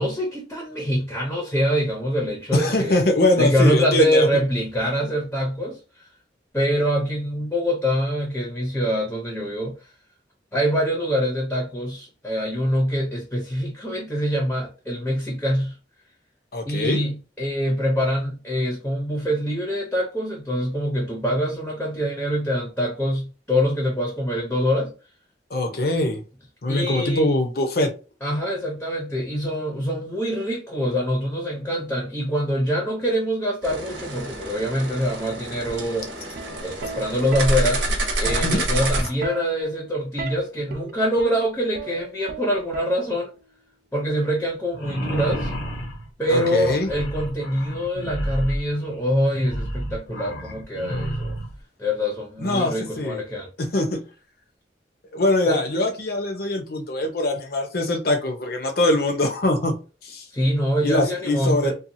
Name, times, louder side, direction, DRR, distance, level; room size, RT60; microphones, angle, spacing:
voice 1, 0.0-3.0 3.4-6.1 6.5-9.8 10.5-15.8 16.7-24.9 26.7-27.3 28.2-36.1 36.6-37.8 38.2-43.3 43.9-45.5 46.2-51.4 51.8-53.5 55.5-55.6 60.3-61.7, equal, 10° left, 0.7 m, -24 dB
voice 2, 2.5-4.3 16.5-17.0 25.5-26.2 26.6-27.9 38.4-38.7 46.3-46.9 52.4-53.2 53.6-54.0 55.1-59.8 60.0-60.2 60.8-61.7, left 1 dB, 60° left, 0.7 m, -22 dB
sound 1, 33.6-39.1, right 1 dB, 90° right, 0.9 m, -27 dB
Plucked string instrument, 36.2-43.4 44.5-44.8, right 4 dB, 55° right, 0.4 m, -37 dB
sound 2, 44.7-51.5, equal, 85° left, 1.0 m, -31 dB
2.7 x 2.3 x 2.6 m
head